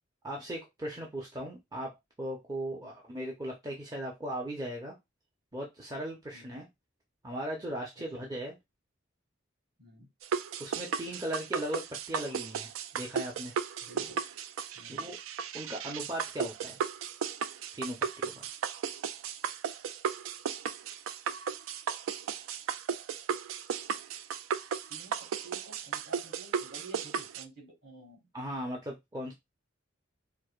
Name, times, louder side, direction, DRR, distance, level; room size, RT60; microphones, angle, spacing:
voice 1, 0.2-4.9 5.5-6.7 7.2-8.5 10.6-13.5 14.9-15.2 15.5-16.8 17.7-18.5 28.3-29.3, right 1 dB, 20° right, -1 dB, 0.6 m, -38 dB
voice 2, 9.8-10.1 13.8-14.2 14.7-15.0 24.9-28.3, right 3 dB, 55° right, 0 dB, 1.8 m, -51 dB
sound 1, 10.2-27.4, right 7 dB, 85° right, 0.3 m, -35 dB
4.7 x 2.0 x 2.4 m, 0.19 s
head